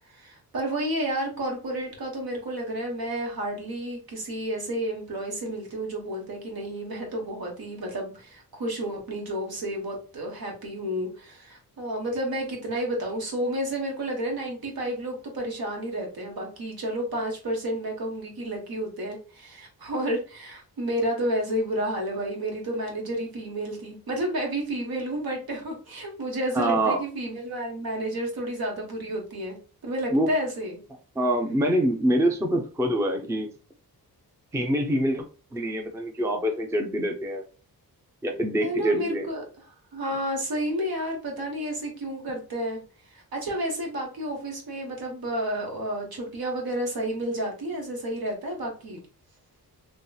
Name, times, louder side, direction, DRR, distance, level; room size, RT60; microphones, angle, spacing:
voice 1, 0.1-29.6 29.8-30.8 38.6-39.4 39.9-42.8 43.1-49.0, right 1 dB, 70° right, 0 dB, 1.2 m, -31 dB
voice 2, 26.5-27.0 30.1-30.3 31.2-33.5 34.5-35.3 35.5-37.4 38.2-39.3, right 1 dB, 10° right, 3 dB, 0.4 m, -25 dB
3.1 x 2.8 x 2.2 m, 0.37 s
wide cardioid pair, 100°, 38 cm